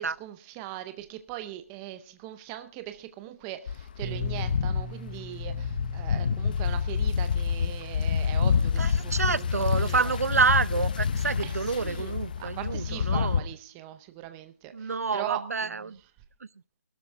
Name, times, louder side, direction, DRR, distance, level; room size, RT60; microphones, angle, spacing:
voice 1, 0.0-9.5 9.8-10.2 11.4-15.9, right 13 dB, 10° right, 10 dB, 0.6 m, -40 dB
sound 1, 3.7-13.4, left 6 dB, 35° left, 0.7 m, -28 dB
Bass guitar, 4.0-10.3, right 2 dB, 40° right, 3.3 m, -44 dB
voice 2, 8.8-13.5 14.7-16.0, right 5 dB, 80° right, 20 dB, 0.7 m, -28 dB
21.0 x 12.5 x 3.6 m, 0.37 s
hypercardioid pair, 175°, 8 cm